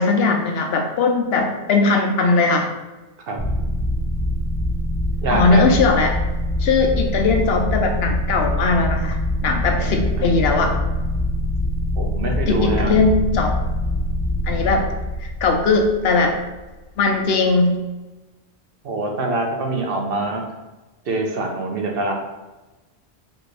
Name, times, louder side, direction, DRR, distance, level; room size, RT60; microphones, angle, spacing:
voice 1, 0.0-2.7 5.3-6.2 6.6-10.8 12.5-13.6 14.5-14.9 15.2-16.3 17.0-17.8, left 3 dB, 75° left, 3 dB, 0.8 m, -19 dB
sound 1, 3.4-16.7, left 1 dB, 5° right, 0.6 m, -24 dB
voice 2, 5.2-5.6 9.8-10.3 10.7-10.8 12.0-12.9 18.8-20.4 21.1-22.1, right 2 dB, 65° right, 1 dB, 0.9 m, -24 dB
4.5 x 2.5 x 3.2 m, 1.1 s
omnidirectional pair, 1.1 m